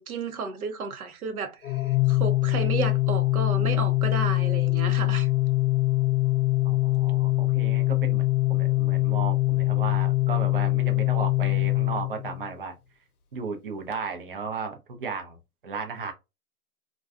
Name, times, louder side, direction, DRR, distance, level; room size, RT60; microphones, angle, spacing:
voice 1, 0.0-5.3, right 5 dB, 80° right, 0.8 m, -32 dB
Organ, 1.6-12.5, left 18 dB, 90° left, 0.7 m, -23 dB
voice 2, 6.6-12.7 13.3-15.4 15.6-16.1, right 5 dB, 40° right, 0.5 m, -35 dB
2.5 x 2.2 x 2.3 m
hypercardioid pair, 160°, 43 cm